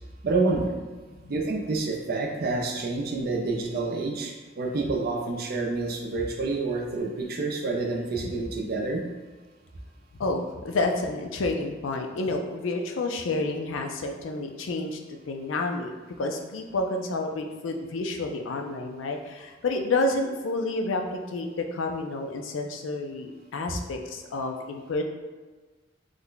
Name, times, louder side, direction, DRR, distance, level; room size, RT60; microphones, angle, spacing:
voice 1, 0.2-0.7 1.3-9.0, right 3 dB, 50° right, 1 dB, 0.5 m, -28 dB
voice 2, 10.1-15.9 16.2-25.0, left 2 dB, 85° left, 4 dB, 0.4 m, -29 dB
3.2 x 2.2 x 3.8 m, 1.3 s
head